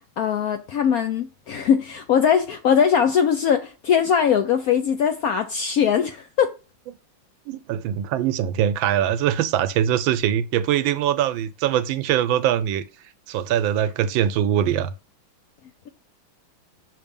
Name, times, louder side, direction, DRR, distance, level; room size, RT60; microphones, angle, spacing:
voice 1, 0.2-6.5, left 7 dB, 75° left, 0.8 m, -21 dB
voice 2, 7.5-12.8 13.3-14.9, right 10 dB, 85° right, 1.4 m, -22 dB
5.9 x 3.3 x 5.2 m
omnidirectional pair, 2.1 m